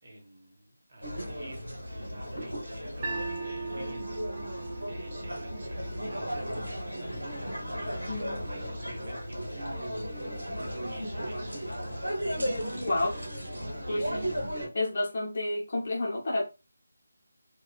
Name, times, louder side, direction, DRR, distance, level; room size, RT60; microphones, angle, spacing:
voice 1, 0.0-4.6 4.9-9.9 10.9-11.6 12.7-13.1 13.9-14.3, right 1 dB, 45° right, 1.2 m, -49 dB
sound 1, 1.0-14.7, equal, 85° right, 1.2 m, -35 dB
sound 2, 3.0-9.2, right 4 dB, 20° right, 1.0 m, -41 dB
voice 2, 8.1-8.4 10.5-10.6 12.9-13.1 13.9-14.1 14.7-16.4, left 2 dB, 40° left, 0.9 m, -30 dB
2.7 x 2.4 x 2.4 m
figure-of-eight pair, 155°, 0 cm